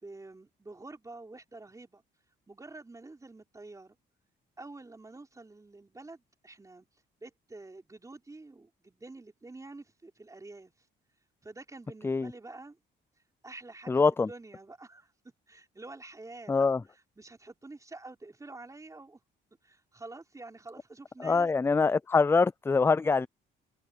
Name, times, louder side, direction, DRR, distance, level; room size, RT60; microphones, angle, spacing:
voice 1, 0.0-2.0 2.5-4.0 4.6-6.9 7.2-10.7 11.4-12.8 13.4-15.1 15.5-16.7 17.2-19.2 19.6-21.5, right 2 dB, 15° right, 3.7 m, -48 dB
voice 2, 13.9-14.3 16.5-16.8 21.2-23.3, left 4 dB, 10° left, 0.3 m, -24 dB
cardioid pair, 110°, 19 cm